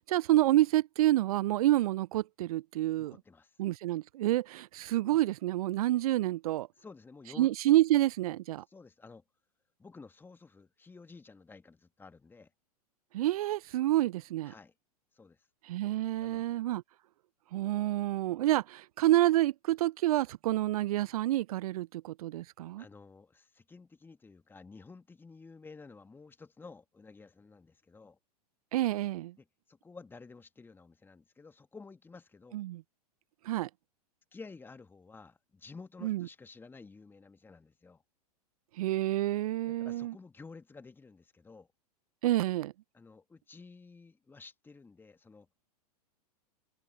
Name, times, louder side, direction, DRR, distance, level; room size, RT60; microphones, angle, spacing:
voice 1, 0.0-3.2 3.6-6.7 7.4-8.6 13.1-14.5 15.7-16.8 17.5-22.8 28.7-29.3 32.5-32.8 33.5-33.7 36.0-36.3 38.8-40.1 42.2-42.7, right 15 dB, 65° right, 0.4 m, -28 dB
voice 2, 3.0-3.6 6.8-7.5 8.7-9.2 9.8-12.5 14.4-14.7 15.1-15.5 16.1-16.6 22.8-28.2 29.4-32.6 34.3-38.0 39.6-41.7 42.9-45.5, left 4 dB, 10° left, 1.6 m, -52 dB
hypercardioid pair, 105°, 20 cm